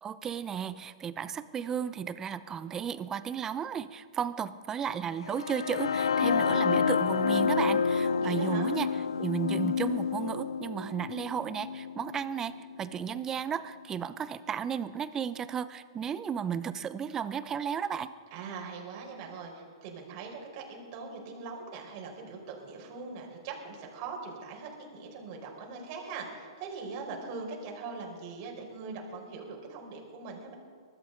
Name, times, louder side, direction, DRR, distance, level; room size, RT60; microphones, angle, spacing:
voice 1, 0.0-8.9 9.2-18.1, right 7 dB, 20° right, 14 dB, 0.7 m, -34 dB
sound 1, 5.3-13.2, left 6 dB, 80° left, 0.6 m, -29 dB
voice 2, 7.9-8.7 18.3-30.5, right 4 dB, 45° right, -1 dB, 4.5 m, -41 dB
23.5 x 13.0 x 3.9 m, 2.3 s
hypercardioid pair, 125°, 3 cm